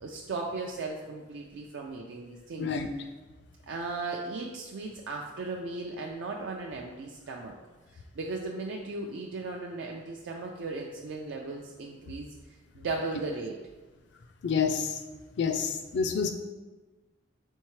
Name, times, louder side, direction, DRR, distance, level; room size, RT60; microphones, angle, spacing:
voice 1, 0.0-2.7 3.7-7.6 7.9-12.3 12.8-13.6, right 3 dB, 75° right, 0 dB, 0.4 m, -36 dB
voice 2, 14.4-15.0 15.4-16.3, left 6 dB, 65° left, 7 dB, 0.4 m, -28 dB
4.4 x 3.6 x 3.1 m, 1.2 s
head